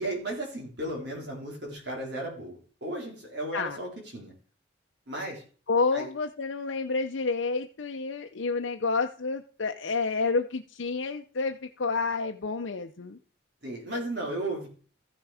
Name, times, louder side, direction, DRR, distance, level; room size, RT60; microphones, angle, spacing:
voice 1, 0.0-4.3 5.1-5.4 5.9-6.1 13.6-14.7, right 1 dB, 60° right, -1 dB, 3.8 m, -35 dB
voice 2, 5.7-13.2, left 4 dB, 75° left, 4 dB, 0.7 m, -29 dB
14.0 x 6.1 x 4.9 m, 0.42 s
head